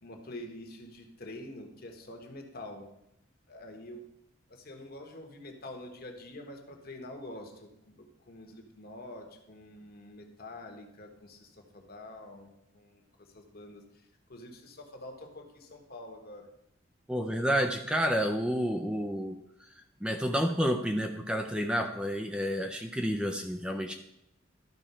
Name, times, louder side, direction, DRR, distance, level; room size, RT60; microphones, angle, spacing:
voice 1, 0.0-2.9 3.5-4.1 4.5-16.5 23.6-23.8, left 1 dB, 50° left, 4 dB, 1.4 m, -46 dB
voice 2, 17.1-19.4 20.0-23.9, equal, 5° right, 4 dB, 0.5 m, -30 dB
12.0 x 4.3 x 5.6 m, 0.80 s
head